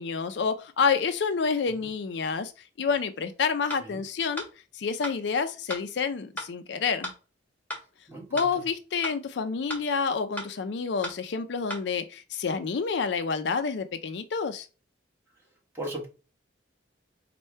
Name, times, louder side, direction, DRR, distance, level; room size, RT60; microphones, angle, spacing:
voice 1, 0.0-2.5 2.8-4.5 4.7-7.1 8.3-14.7, left 5 dB, 65° left, 0.4 m, -28 dB
sound 1, 3.7-3.8 4.4-4.5 5.0-5.2 5.7-5.8 6.4-6.5 7.0-7.2 7.7-7.8 8.4-8.5 9.0-9.2 9.7-9.8 10.4-10.5 11.0-11.2 11.7-11.8, left 1 dB, 10° left, 1.2 m, -35 dB
voice 2, 8.1-8.5 15.7-16.1, right 1 dB, 15° right, 1.4 m, -37 dB
4.3 x 2.2 x 4.4 m
head